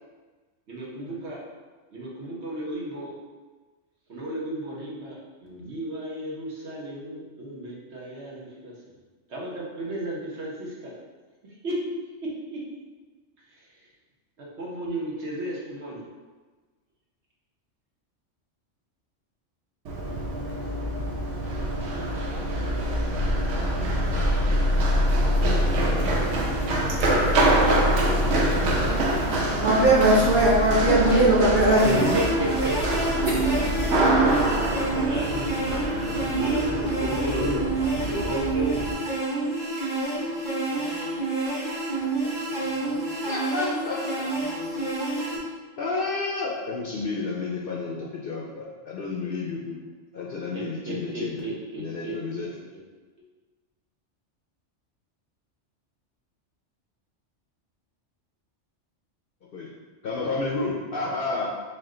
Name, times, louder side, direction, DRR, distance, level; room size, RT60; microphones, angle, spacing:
voice 1, 0.7-1.4 1.9-3.1 4.1-8.7 9.3-10.9 11.6-11.7 12.5-12.6 13.5-13.6 14.4-16.0 31.1-31.2 32.1-33.0 34.2-34.4 35.0-35.5 36.3-37.5 38.0-38.8 50.5-52.1, right 1 dB, 65° right, -5 dB, 1.2 m, -33 dB
Run, 19.9-38.9, right 1 dB, 85° right, 1.0 m, -26 dB
sound 1, 23.1-35.9, left 1 dB, 85° left, 1.0 m, -28 dB
voice 2, 29.5-32.2 33.3-34.1 34.9-35.0, right 1 dB, 45° right, -5 dB, 1.0 m, -21 dB
sound 2, 31.8-45.4, right 2 dB, 20° right, 1.1 m, -28 dB
voice 3, 37.0-37.7 43.3-44.3 45.8-49.8 50.1-51.5 51.8-52.5 59.5-59.7 60.0-61.5, left 3 dB, 60° left, -3 dB, 0.6 m, -30 dB
4.4 x 2.2 x 3.7 m, 1.3 s
omnidirectional pair, 1.2 m